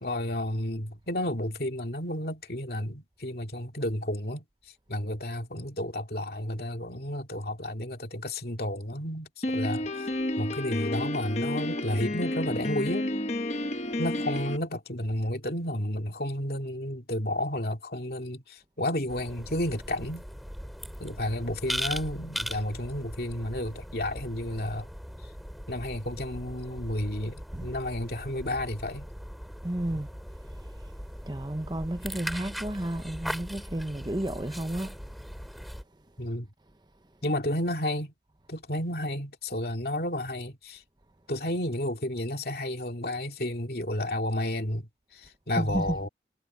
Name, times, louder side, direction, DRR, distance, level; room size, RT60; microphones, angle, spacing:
voice 1, 0.0-4.4 4.9-10.1 10.4-13.1 14.0-20.3 21.0-24.9 25.7-29.1 36.2-36.5 37.2-38.1 38.5-40.8 41.3-46.1, left 1 dB, 60° left, 2.6 m, -32 dB
Piano, 9.4-14.6, left 1 dB, 40° left, 1.2 m, -31 dB
sound 1, 19.1-35.8, equal, ahead, 4.0 m, -39 dB
voice 2, 29.6-30.1 30.6-30.7 31.3-35.0 45.6-46.0, right 1 dB, 25° right, 0.9 m, -32 dB
head